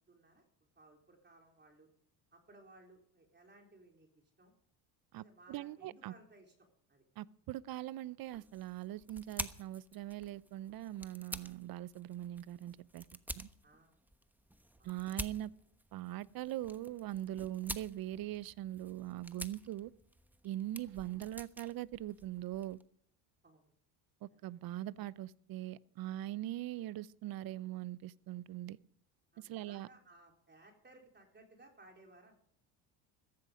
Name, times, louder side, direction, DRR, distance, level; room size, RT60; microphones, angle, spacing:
voice 1, 0.1-0.4 0.8-1.9 2.3-4.5 5.1-7.0 13.6-14.0 14.8-14.9 23.4-23.7 24.3-24.4 29.3-32.3, right 2 dB, 25° right, 4.0 m, -61 dB
voice 2, 5.1-6.1 7.2-13.0 13.3-13.5 14.8-15.5 15.9-19.9 20.4-22.8 24.2-28.8 29.4-29.9, right 14 dB, 50° right, 0.7 m, -41 dB
sound 1, 8.3-22.8, right 1 dB, 5° right, 1.1 m, -49 dB
15.5 x 14.5 x 5.1 m
supercardioid pair, 80°, 44 cm